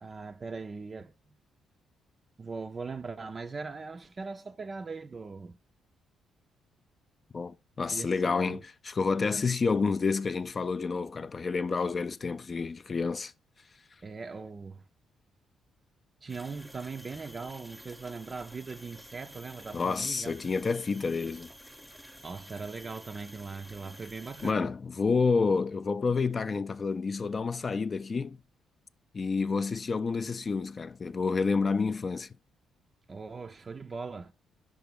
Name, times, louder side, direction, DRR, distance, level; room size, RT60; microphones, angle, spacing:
voice 1, 0.0-1.1 2.4-5.6 7.9-8.6 14.0-14.8 16.2-20.4 22.2-24.7 33.1-34.3, right 4 dB, 35° right, 0.4 m, -40 dB
voice 2, 7.3-13.3 19.7-21.5 24.4-28.4 29.1-32.3, left 4 dB, 35° left, 0.3 m, -29 dB
sound 1, 16.3-24.5, equal, 5° right, 0.7 m, -50 dB
5.1 x 4.8 x 5.1 m
cardioid pair, 90°, 0 cm